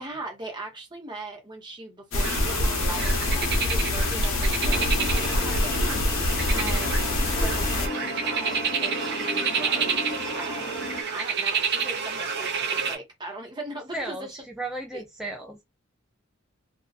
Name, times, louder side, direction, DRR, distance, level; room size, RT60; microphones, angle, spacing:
voice 1, 0.0-10.0 10.3-14.4 14.9-15.0, right 2 dB, 20° right, 1.0 m, -39 dB
sound 1, 2.1-7.9, left 2 dB, 80° left, 0.8 m, -25 dB
sound 2, 2.2-13.0, right 6 dB, 55° right, 0.6 m, -29 dB
sound 3, 4.6-11.0, left 1 dB, 35° left, 0.7 m, -35 dB
voice 2, 6.5-6.9 10.2-10.4 13.9-15.6, right 2 dB, 5° right, 0.4 m, -36 dB
2.6 x 2.3 x 2.3 m
head